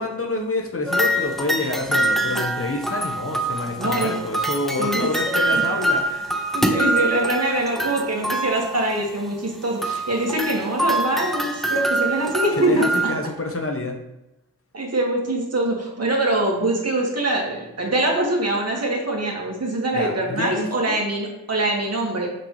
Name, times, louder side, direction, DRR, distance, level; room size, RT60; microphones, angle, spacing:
voice 1, 0.0-6.4 12.5-13.9 20.0-21.0, left 2 dB, 35° left, 2 dB, 1.2 m, -27 dB
sound 1, 0.9-9.2 9.8-13.1, right 1 dB, ahead, 0.8 m, -24 dB
voice 2, 3.8-4.1 4.8-5.1 5.5-5.6 6.5-12.8 14.7-22.3, right 2 dB, 40° right, -1 dB, 2.1 m, -23 dB
6.0 x 5.9 x 3.3 m, 0.94 s
supercardioid pair, 50°, 37 cm